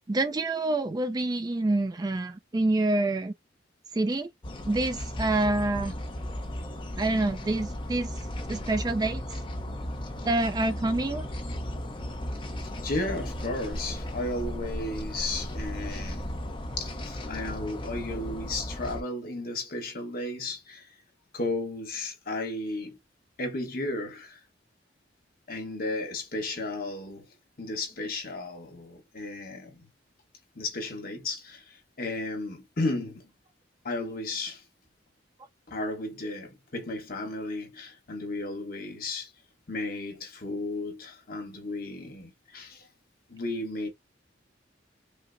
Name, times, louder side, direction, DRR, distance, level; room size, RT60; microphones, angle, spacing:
voice 1, 0.1-3.3 3.9-4.3 4.7-5.9 7.0-8.1 8.5-9.2 10.2-11.3, right 2 dB, 20° right, 0.3 m, -27 dB
sound 1, 4.4-19.0, left 1 dB, 25° left, 0.6 m, -35 dB
voice 2, 12.8-16.3 16.8-21.0 21.3-23.0 23.4-24.4 25.5-27.3 27.6-29.9 30.5-33.3 33.8-34.6 35.7-39.3 39.7-42.9 43.3-43.9, left 2 dB, 50° left, 1.1 m, -34 dB
5.2 x 2.0 x 2.5 m
head